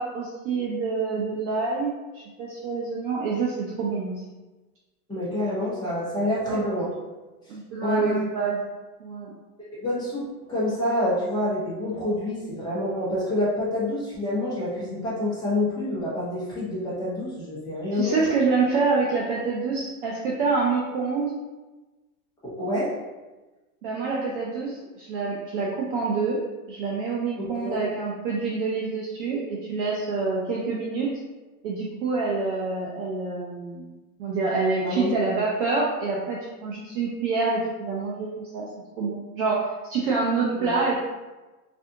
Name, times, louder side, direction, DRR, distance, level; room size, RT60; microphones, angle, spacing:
voice 1, 0.0-4.2 6.5-6.7 7.5-8.6 9.0-9.3 17.9-21.3 23.8-26.4 26.7-31.1 31.6-33.9 34.2-38.7 39.0-41.0, right 4 dB, 40° right, -4 dB, 0.4 m, -27 dB
voice 2, 5.1-6.9 7.5-7.6 7.8-8.2 9.8-18.2 22.4-22.9 27.4-27.8 34.8-35.1 40.6-40.7, left 1 dB, 10° left, -8 dB, 0.8 m, -27 dB
3.3 x 2.5 x 2.7 m, 1.2 s
supercardioid pair, 135°, 47 cm